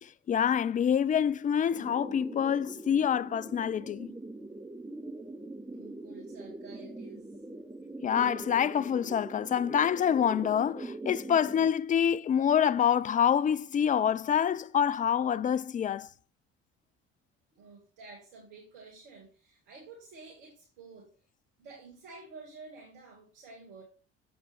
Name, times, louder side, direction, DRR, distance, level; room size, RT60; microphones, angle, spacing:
voice 1, 0.0-4.1 8.0-16.1, left 8 dB, 20° left, 0.4 m, -26 dB
sound 1, 1.7-11.7, right 2 dB, 10° right, 1.2 m, -43 dB
voice 2, 5.7-7.3 17.5-21.1 21.6-23.8, right 3 dB, 70° right, 2.0 m, -50 dB
7.3 x 7.2 x 3.3 m
figure-of-eight pair, 55°, 36 cm